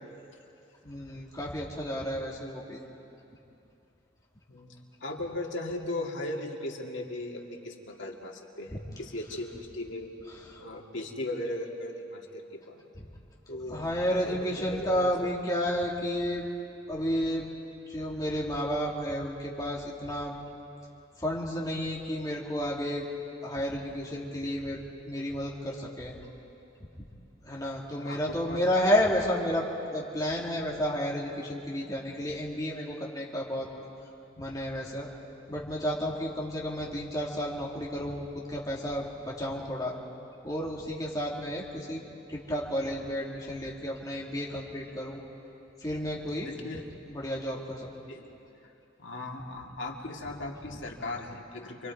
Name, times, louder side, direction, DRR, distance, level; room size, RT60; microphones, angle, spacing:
voice 1, 0.8-2.8 10.5-10.6 12.9-13.0 13.7-16.5 16.9-17.5 17.9-20.4 21.2-23.0 23.4-26.1 27.4-29.7 29.9-33.7 34.4-35.1 35.5-39.9 40.4-42.0 42.3-45.2 45.8-46.5 47.1-47.9, equal, 20° left, -4 dB, 2.8 m, -31 dB
voice 2, 5.0-10.1 10.6-12.9 13.5-15.4 27.8-28.6 46.4-46.9 48.0-48.3 49.0-51.9, left 1 dB, 85° left, 0 dB, 2.2 m, -38 dB
28.0 x 23.5 x 4.7 m, 2.8 s
head